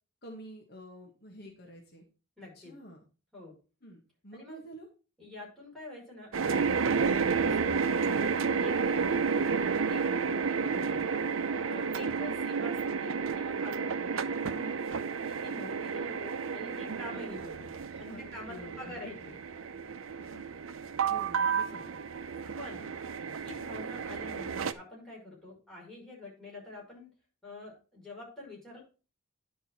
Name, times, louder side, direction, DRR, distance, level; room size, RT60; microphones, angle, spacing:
voice 1, 0.2-2.0 2.5-3.0 3.8-4.9 17.9-19.4 20.2-20.5 21.1-21.9 22.8-23.0, equal, 50° left, 0 dB, 1.8 m, -49 dB
voice 2, 2.4-2.7 3.3-3.5 4.3-4.6 5.2-11.1 11.5-14.9 15.2-19.1 21.4-21.8 22.6-22.8 23.3-27.1 27.4-28.8, left 2 dB, ahead, -5 dB, 5.6 m, -47 dB
sound 1, 6.3-24.7, right 5 dB, 80° right, 0.6 m, -31 dB
10.0 x 5.4 x 4.5 m, 0.34 s
head